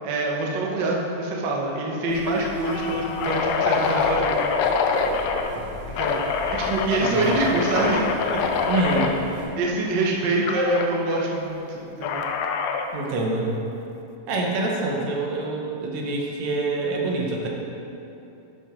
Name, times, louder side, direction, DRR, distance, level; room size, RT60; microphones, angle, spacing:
voice 1, 0.0-4.4 5.9-6.2 6.5-8.4 9.6-12.2, right 2 dB, 80° right, -2 dB, 0.9 m, -25 dB
sound 1, 1.0-1.3 1.6-1.7 2.2-5.5 5.9-9.1 10.5-10.9 12.0-13.0, left 5 dB, 80° left, 1.6 m, -25 dB
sound 2, 2.1-9.5, left 1 dB, 60° left, 3.1 m, -37 dB
voice 2, 6.9-7.3 8.7-9.2 12.9-13.6 14.3-17.5, right 2 dB, 65° right, -1 dB, 2.1 m, -26 dB
10.5 x 5.3 x 5.0 m, 2.8 s
omnidirectional pair, 3.7 m